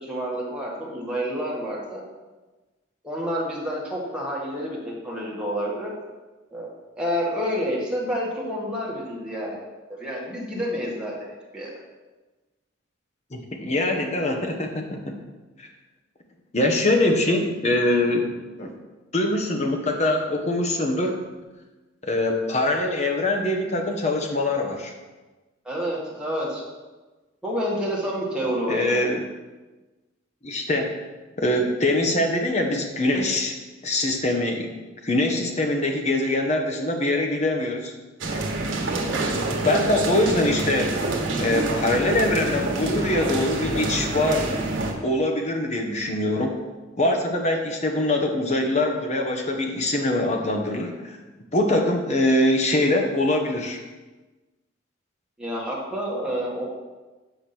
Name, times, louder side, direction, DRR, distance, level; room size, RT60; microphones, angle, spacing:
voice 1, 0.0-2.0 3.0-5.9 6.5-6.7 7.0-9.6 10.0-11.7 25.7-26.6 27.4-29.1 38.9-39.3 55.4-56.7, equal, 5° right, -5 dB, 1.9 m, -29 dB
voice 2, 13.3-14.8 15.6-15.7 16.5-18.3 18.6-18.8 19.1-21.2 22.0-24.9 28.7-29.2 30.4-30.9 31.4-33.5 33.8-34.7 35.0-37.9 38.3-38.4 39.6-40.9 41.3-44.4 45.0-46.5 47.0-51.2 51.5-53.8, left 1 dB, 35° left, 3 dB, 1.1 m, -23 dB
sound 1, 38.2-44.9, right 2 dB, 80° right, 1.3 m, -27 dB
8.0 x 5.0 x 6.0 m, 1.2 s
head